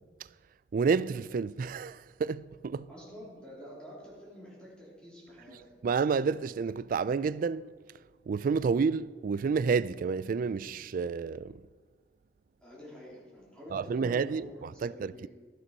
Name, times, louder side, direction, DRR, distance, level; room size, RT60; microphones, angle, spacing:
voice 1, 0.7-2.9 5.8-7.7 8.3-11.6 13.7-15.3, right 5 dB, 50° right, 0.3 m, -30 dB
voice 2, 2.9-5.7 12.6-15.3, equal, 5° left, 3.5 m, -48 dB
14.0 x 8.2 x 5.4 m
head